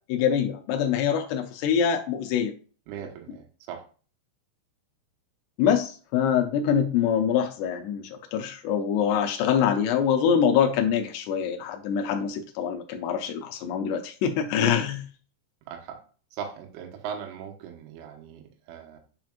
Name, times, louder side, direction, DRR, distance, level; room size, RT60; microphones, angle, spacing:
voice 1, 0.1-2.5 5.6-15.1, left 8 dB, 90° left, 4 dB, 2.3 m, -24 dB
voice 2, 2.9-3.8 15.7-16.0 16.3-19.0, right 8 dB, 75° right, 3 dB, 3.6 m, -39 dB
9.3 x 6.0 x 2.5 m, 0.38 s
omnidirectional pair, 5.8 m